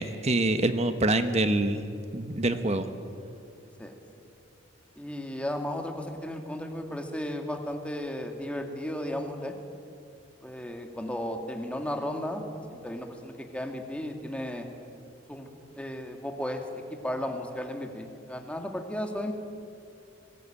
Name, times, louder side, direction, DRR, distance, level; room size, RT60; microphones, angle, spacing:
voice 1, 0.0-1.8 2.1-2.9, right 2 dB, 35° right, 9 dB, 1.4 m, -25 dB
voice 2, 5.0-9.5 10.4-12.4 12.7-14.7 15.3-15.5 15.7-19.3, left 1 dB, 5° left, 4 dB, 2.4 m, -34 dB
26.0 x 21.5 x 9.1 m, 2.6 s
head